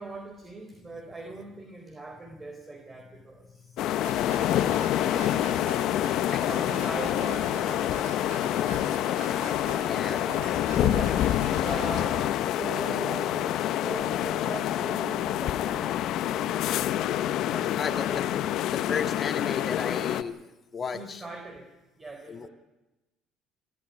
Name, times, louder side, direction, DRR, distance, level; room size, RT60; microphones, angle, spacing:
voice 1, 0.0-3.8 5.0-5.6 6.2-9.4 10.1-11.2 11.6-16.8 17.5-18.2 20.4-20.5 20.8-21.7 22.0-22.5, right 2 dB, 25° right, 4 dB, 4.3 m, -41 dB
sound 1, 3.8-20.2, left 12 dB, 65° left, 1.0 m, -27 dB
sound 2, 4.0-12.0, right 7 dB, 80° right, 2.8 m, -44 dB
voice 2, 9.8-10.5 11.5-11.8 17.8-18.2 18.6-20.4 20.7-21.2 22.3-22.5, left 5 dB, 40° left, 5 dB, 2.1 m, -34 dB
25.5 x 13.5 x 9.7 m, 1.0 s
supercardioid pair, 80°, 0 cm